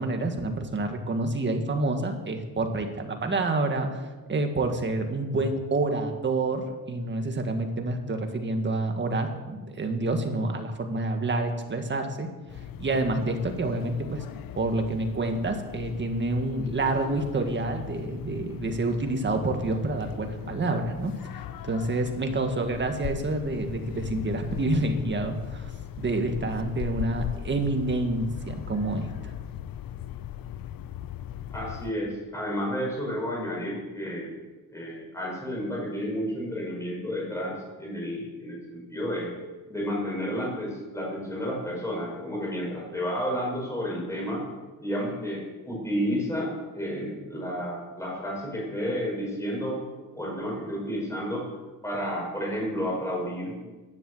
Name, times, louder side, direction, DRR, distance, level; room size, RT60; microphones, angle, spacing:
voice 1, 0.0-4.0 4.3-12.3 12.8-14.2 14.6-21.1 21.6-25.7 26.0-29.3, right 2 dB, 35° right, 5 dB, 1.8 m, -28 dB
sound 1, 12.5-31.9, left 11 dB, 80° left, 0.7 m, -39 dB
voice 2, 31.5-34.4 34.7-39.3 39.7-44.4 44.8-49.8 50.1-51.5 51.8-53.6, equal, 10° left, -3 dB, 5.4 m, -31 dB
11.5 x 11.0 x 7.9 m, 1.3 s
cardioid pair, 135°, 34 cm